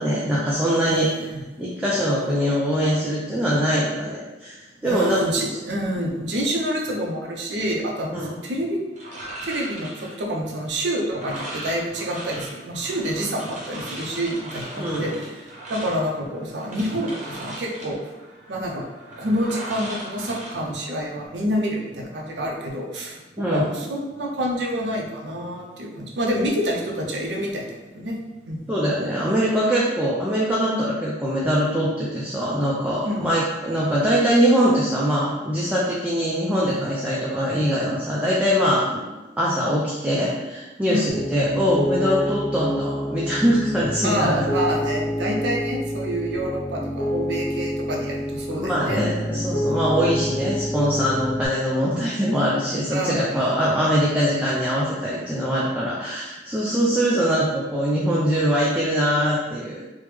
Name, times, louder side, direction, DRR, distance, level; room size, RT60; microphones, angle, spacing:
voice 1, 0.0-1.1 1.6-4.6 4.8-5.2 8.1-8.3 14.8-15.2 23.4-23.7 28.7-39.1 39.4-44.5 48.6-59.8, equal, 5° right, -6 dB, 0.4 m, -22 dB
voice 2, 0.8-1.4 4.8-8.8 9.4-15.3 15.7-18.0 18.5-18.9 19.2-27.7 27.9-28.2 28.5-28.6 33.0-33.3 40.9-41.1 44.0-49.1 52.9-53.2, equal, 80° right, 0 dB, 0.5 m, -27 dB
sound 1, 9.0-21.3, right 1 dB, 45° right, 0.7 m, -38 dB
Piano, 41.1-51.5, left 1 dB, 50° left, 0.5 m, -28 dB
3.3 x 2.1 x 3.1 m, 1.1 s
head